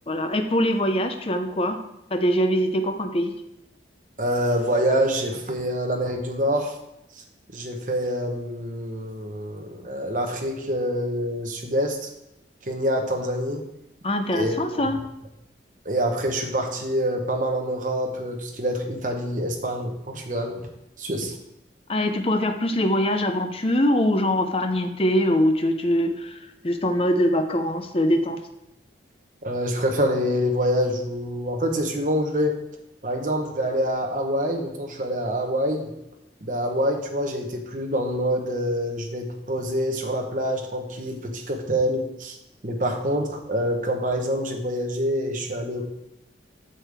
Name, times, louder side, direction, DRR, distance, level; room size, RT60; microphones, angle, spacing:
voice 1, 0.1-1.8 2.1-3.3 14.0-15.0 21.9-26.4 26.6-28.4, equal, 30° left, 7 dB, 0.6 m, -23 dB
voice 2, 4.2-6.7 7.5-12.1 12.6-13.6 14.3-14.6 15.8-20.6 21.0-21.3 29.4-32.5 33.0-35.9 36.4-42.4 42.6-45.8, equal, 45° right, 2 dB, 1.1 m, -26 dB
8.8 x 6.6 x 3.5 m, 0.86 s
head